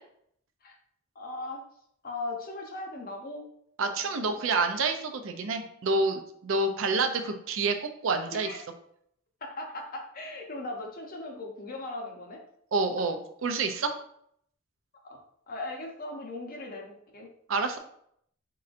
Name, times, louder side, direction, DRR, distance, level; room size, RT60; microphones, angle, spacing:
voice 1, 1.2-1.6 2.0-3.5 3.8-4.6 8.3-8.6 9.4-12.4 13.0-13.1 15.0-15.2 15.5-17.3, left 2 dB, 40° left, 2 dB, 0.7 m, -39 dB
voice 2, 3.8-8.5 12.7-13.9 17.5-17.8, right 3 dB, 65° right, 7 dB, 0.5 m, -28 dB
4.2 x 3.8 x 2.5 m, 0.69 s
head